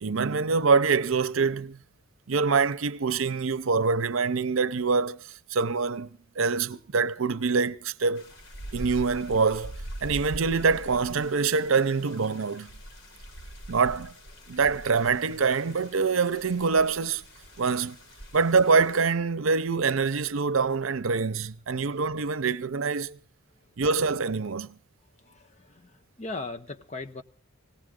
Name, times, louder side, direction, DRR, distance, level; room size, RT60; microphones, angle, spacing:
voice 1, 0.0-1.8 2.3-5.2 5.5-6.1 6.4-8.3 8.7-12.7 13.7-14.1 14.5-17.2 17.6-18.0 18.3-23.2 23.8-24.8, right 4 dB, 80° right, 0.7 m, -25 dB
sound 1, 8.2-19.1, right 1 dB, 80° left, 3.5 m, -43 dB
voice 2, 25.2-27.2, left 3 dB, 35° left, 1.0 m, -39 dB
18.5 x 17.5 x 3.7 m
head